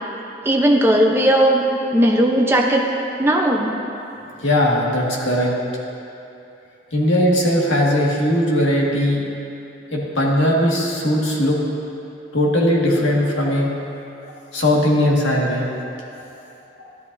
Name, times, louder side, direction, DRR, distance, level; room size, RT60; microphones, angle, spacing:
voice 1, 0.4-1.7 1.9-2.9 3.2-3.7, right 1 dB, 10° right, 0 dB, 0.8 m, -16 dB
voice 2, 4.4-5.5 6.9-9.2 9.9-11.6 12.3-13.7 14.5-15.6, equal, 80° left, -4 dB, 1.9 m, -18 dB
14.0 x 11.5 x 2.7 m, 2.8 s
head